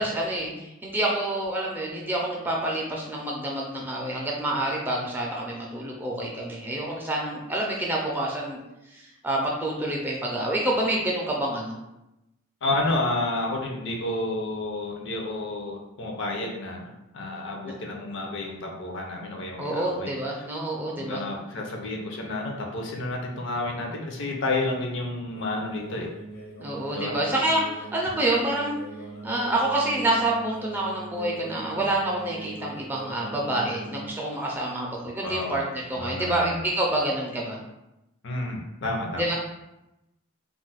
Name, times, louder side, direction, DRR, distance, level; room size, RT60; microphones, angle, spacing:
voice 1, 0.0-8.6 8.9-11.8 19.6-21.2 26.6-28.8 29.2-37.6 39.2-39.4, right 1 dB, 10° right, -3 dB, 0.4 m, -27 dB
voice 2, 12.6-20.4 20.9-26.1 26.9-27.2 35.2-35.6 36.0-36.6 38.2-39.4, left 2 dB, 60° left, 0 dB, 0.5 m, -30 dB
sound 1, 25.3-34.1, right 2 dB, 80° left, 0.9 m, -41 dB
2.4 x 2.0 x 3.9 m, 0.92 s
head